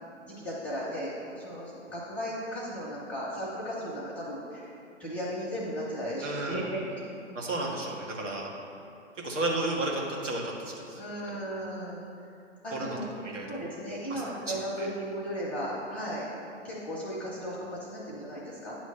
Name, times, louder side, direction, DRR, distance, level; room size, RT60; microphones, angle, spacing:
voice 1, 0.2-4.7 5.0-7.0 10.9-12.0 12.6-13.0 13.5-16.3 16.6-18.8, equal, 5° left, -5 dB, 0.7 m, -35 dB
voice 2, 6.2-6.6 7.3-8.5 9.2-11.0 11.3-11.4 12.7-13.6 14.1-14.2 14.8-14.9, right 2 dB, 80° right, -2 dB, 1.7 m, -33 dB
9.3 x 3.1 x 6.7 m, 2.7 s
hypercardioid pair, 140°, 37 cm